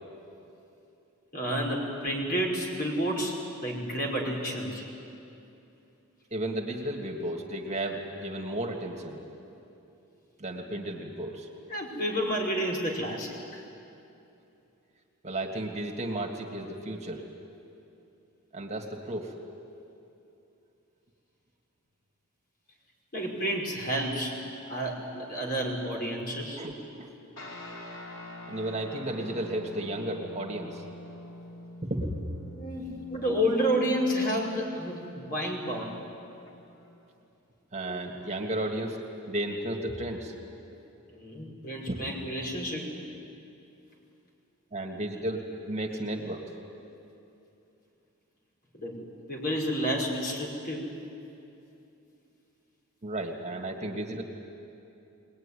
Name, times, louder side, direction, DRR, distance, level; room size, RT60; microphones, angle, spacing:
voice 1, 1.3-4.8 11.7-13.6 23.1-24.3 24.7-26.6 32.5-35.9 41.1-42.8 48.7-49.0 49.3-50.9, equal, 45° left, -1 dB, 5.2 m, -30 dB
voice 2, 6.3-9.2 10.4-11.5 15.2-17.3 18.5-19.4 26.6-27.1 28.5-30.8 31.8-32.2 32.9-33.0 37.7-39.0 39.3-40.3 41.9-42.0 44.7-46.5 53.0-54.2, right 1 dB, 30° right, 2 dB, 1.9 m, -33 dB
sound 1, 27.4-37.1, left 1 dB, 65° left, 3.2 m, -46 dB
23.0 x 20.0 x 9.9 m, 2.8 s
head